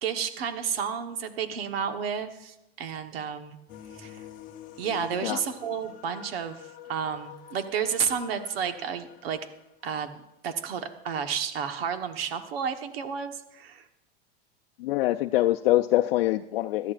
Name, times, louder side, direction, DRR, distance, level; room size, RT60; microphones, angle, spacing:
voice 1, 0.0-3.6 3.9-4.3 4.8-9.4 9.8-13.9, right 7 dB, 85° right, 7 dB, 1.3 m, -31 dB
sound 1, 3.7-9.8, left 11 dB, 30° left, 0.8 m, -47 dB
voice 2, 14.8-16.9, left 16 dB, 80° left, 5 dB, 0.5 m, -24 dB
20.5 x 13.0 x 2.5 m, 0.91 s
supercardioid pair, 145°, 29 cm